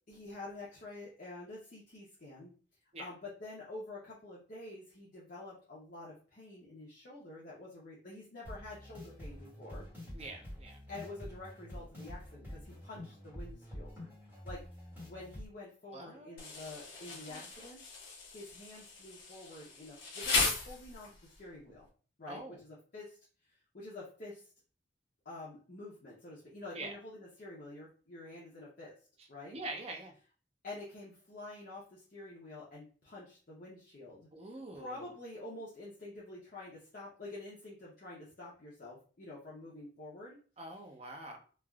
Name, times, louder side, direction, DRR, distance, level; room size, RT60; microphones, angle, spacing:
voice 1, 0.1-2.5 3.0-9.9 10.9-13.9 14.4-14.7 15.0-21.9 22.2-23.2 23.7-24.5 25.2-28.9 29.3-29.6 30.6-34.3 34.7-40.4, left 2 dB, 50° left, -7 dB, 0.7 m, -48 dB
sound 1, 8.4-15.5, left 1 dB, 10° right, 1.3 m, -47 dB
voice 2, 10.1-10.8 15.9-16.5 17.1-17.5 22.3-22.6 26.7-26.9 29.5-30.1 34.3-35.1 40.6-41.4, right 2 dB, 35° right, 3 dB, 0.5 m, -45 dB
Insect, 16.4-21.3, left 3 dB, 75° left, 0.9 m, -37 dB
3.3 x 2.4 x 2.3 m, 0.40 s
head